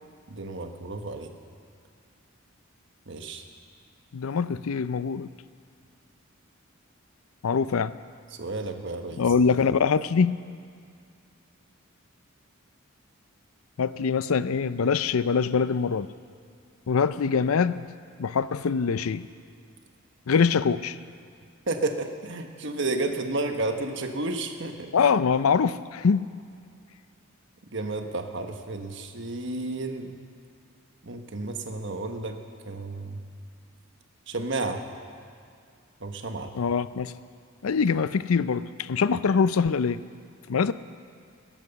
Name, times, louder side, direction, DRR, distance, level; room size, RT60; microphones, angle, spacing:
voice 1, 0.3-1.3 3.1-3.4 8.4-9.2 21.7-24.9 27.7-30.2 31.0-32.4 32.7-33.2 34.3-34.9 36.0-36.5, right 2 dB, 60° right, 5 dB, 1.3 m, -32 dB
voice 2, 4.1-5.3 7.4-7.9 9.2-10.4 13.8-16.1 16.9-17.9 18.2-19.3 20.3-21.0 24.9-26.3 36.5-37.1 37.6-40.0 40.5-40.7, left 5 dB, 85° left, 15 dB, 0.5 m, -23 dB
17.5 x 11.0 x 7.0 m, 2.3 s
head